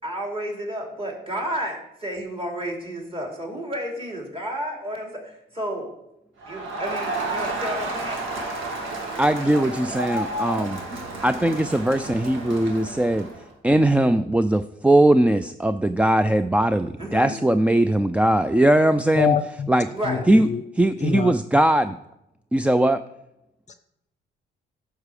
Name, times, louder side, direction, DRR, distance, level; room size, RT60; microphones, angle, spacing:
voice 1, 0.0-5.9 6.5-8.2 17.0-17.4 19.9-20.2, equal, 30° right, 2.9 m, -31 dB
Crowd, 6.4-13.4, right 2 dB, 80° right, 1.8 m, -31 dB
voice 2, 9.2-10.8 11.2-13.3 13.6-19.4 19.7-19.9 20.3-20.5 20.7-22.0 22.5-23.0, right 1 dB, 5° right, 0.3 m, -20 dB
voice 3, 19.2-19.7 20.0-20.6 21.0-21.3 23.7-23.8, left 7 dB, 35° left, 0.6 m, -25 dB
9.6 x 6.7 x 4.9 m
cardioid pair, 90°, 20 cm